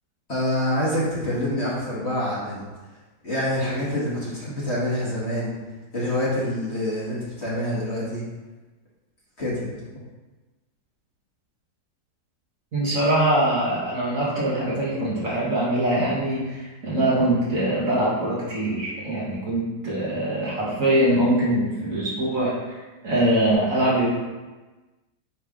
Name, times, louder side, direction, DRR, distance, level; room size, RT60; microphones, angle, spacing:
voice 1, 0.3-2.7 3.2-5.5 5.9-8.2 9.4-9.8, left 1 dB, 40° left, -7 dB, 1.7 m, -26 dB
voice 2, 12.7-24.1, right 1 dB, 55° right, -7 dB, 2.0 m, -23 dB
9.0 x 3.4 x 3.6 m, 1.2 s
omnidirectional pair, 1.8 m